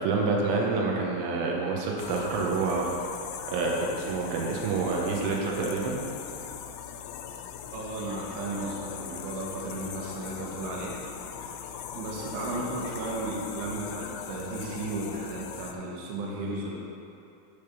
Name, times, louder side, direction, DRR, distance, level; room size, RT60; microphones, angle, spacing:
voice 1, 0.0-2.9 3.5-6.0, right 3 dB, 90° right, -2 dB, 3.3 m, -27 dB
sound 1, 2.0-15.7, left 8 dB, 85° left, 2.9 m, -40 dB
voice 2, 7.7-11.0 11.9-16.8, right 2 dB, 70° right, -3 dB, 2.9 m, -34 dB
10.5 x 3.5 x 5.8 m, 2.7 s
omnidirectional pair, 5.5 m